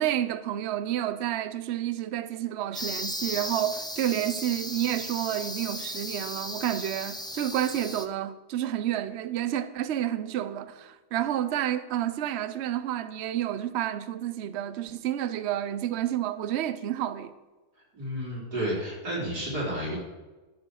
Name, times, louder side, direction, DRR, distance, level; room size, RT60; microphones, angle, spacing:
voice 1, 0.0-17.3, right 11 dB, 55° right, 0.8 m, -30 dB
sound 1, 2.7-8.1, left 1 dB, 5° left, 0.3 m, -36 dB
voice 2, 17.9-20.0, equal, 90° right, 5.3 m, -31 dB
12.5 x 7.3 x 6.5 m
omnidirectional pair, 1.7 m